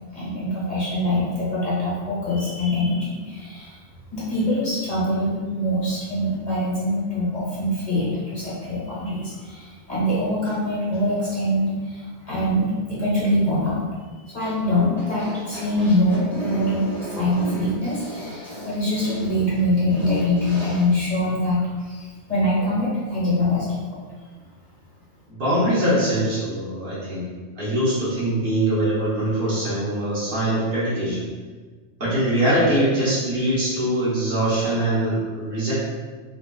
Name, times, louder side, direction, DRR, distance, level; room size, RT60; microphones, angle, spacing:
voice 1, 0.1-3.8 4.1-13.8 14.3-23.8, left 1 dB, 40° left, -10 dB, 1.2 m, -24 dB
sound 1, 14.4-20.8, right 2 dB, ahead, 1.0 m, -34 dB
voice 2, 25.3-27.3 27.6-31.3 32.0-35.7, right 1 dB, 55° right, -9 dB, 1.1 m, -22 dB
3.8 x 2.3 x 2.2 m, 1.4 s
omnidirectional pair, 1.2 m